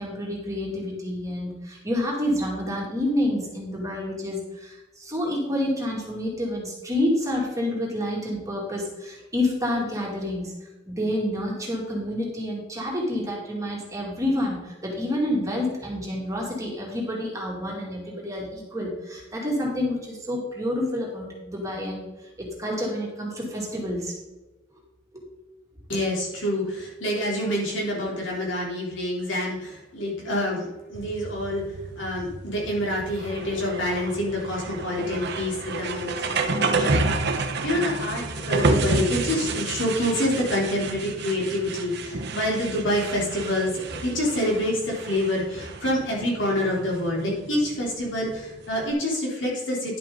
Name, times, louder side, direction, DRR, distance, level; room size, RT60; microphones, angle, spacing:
voice 1, 0.0-10.6 10.9-22.1 22.4-24.2 25.1-25.2, left 1 dB, 15° right, -2 dB, 2.4 m, -28 dB
voice 2, 25.9-31.6 32.0-37.1 37.4-50.0, left 1 dB, 70° left, -3 dB, 3.3 m, -27 dB
sound 1, 30.9-48.9, right 3 dB, 60° right, 1.1 m, -30 dB
11.0 x 7.7 x 3.8 m, 1.1 s
head